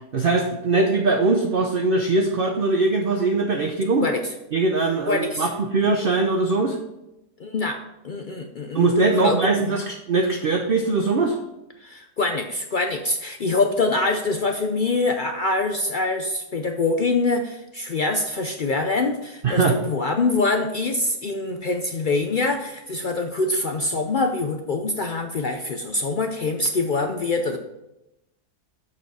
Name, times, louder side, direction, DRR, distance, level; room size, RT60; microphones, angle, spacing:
voice 1, 0.1-4.1 4.5-6.8 8.7-11.4 19.4-19.8, right 3 dB, 45° right, 3 dB, 0.8 m, -21 dB
voice 2, 5.1-5.5 7.4-9.8 11.8-27.6, left 3 dB, 70° left, 5 dB, 0.4 m, -24 dB
7.2 x 6.5 x 4.7 m, 0.92 s
omnidirectional pair, 1.6 m